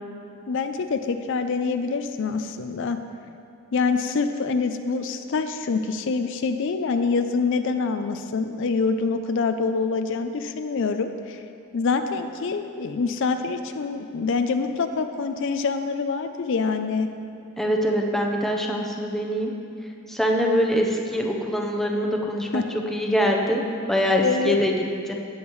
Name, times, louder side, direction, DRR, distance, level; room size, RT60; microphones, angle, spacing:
voice 1, 0.5-3.0 3.7-11.4 11.7-17.1 22.5-22.6 24.2-24.6, left 4 dB, 60° left, 8 dB, 0.4 m, -25 dB
voice 2, 17.6-19.5 20.1-22.6 22.9-23.6 23.9-24.7 25.1-25.2, equal, ahead, 0 dB, 0.8 m, -23 dB
18.0 x 7.3 x 3.1 m, 2.5 s
head